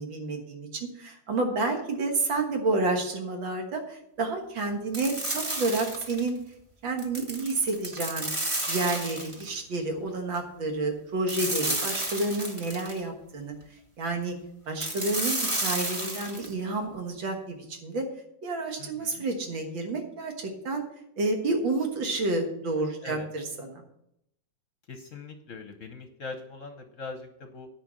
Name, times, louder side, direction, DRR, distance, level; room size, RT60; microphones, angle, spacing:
voice 1, 0.0-6.4 6.8-8.3 8.7-13.5 14.0-14.3 14.7-18.1 18.4-20.8 21.2-23.8, right 2 dB, 80° right, 3 dB, 2.3 m, -30 dB
sound 1, 4.9-6.3 7.0-9.5 11.3-13.0 14.8-16.5, right 1 dB, 20° right, 1.0 m, -31 dB
voice 2, 18.8-19.2 23.0-23.3 24.9-27.7, left 4 dB, 55° left, 6 dB, 1.0 m, -41 dB
10.0 x 4.9 x 7.6 m, 0.78 s
omnidirectional pair, 2.1 m